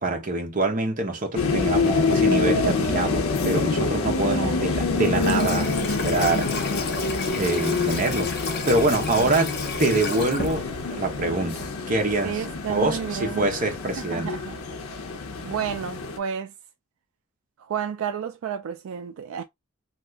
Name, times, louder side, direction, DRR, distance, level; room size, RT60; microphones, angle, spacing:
voice 1, 0.0-6.6 7.2-9.5 9.8-14.3, right 2 dB, 40° right, 0.8 m, -25 dB
sound 1, 1.3-16.2, left 3 dB, 85° left, 0.6 m, -26 dB
voice 2, 4.3-4.8 9.2-9.3 12.2-13.5 14.0-14.6 15.4-16.5 17.6-19.4, right 8 dB, 75° right, 0.3 m, -31 dB
Water tap faucet / Sink (filling or washing), 4.9-11.1, left 4 dB, 45° left, 0.6 m, -33 dB
2.7 x 2.4 x 3.4 m
head